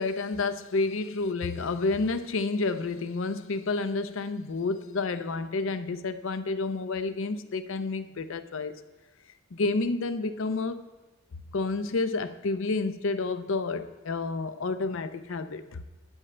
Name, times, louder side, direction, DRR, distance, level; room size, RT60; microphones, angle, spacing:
voice 1, 0.0-8.7 9.5-10.8 11.5-15.8, left 3 dB, 70° left, 0.5 m, -30 dB
12.5 x 8.8 x 3.3 m
head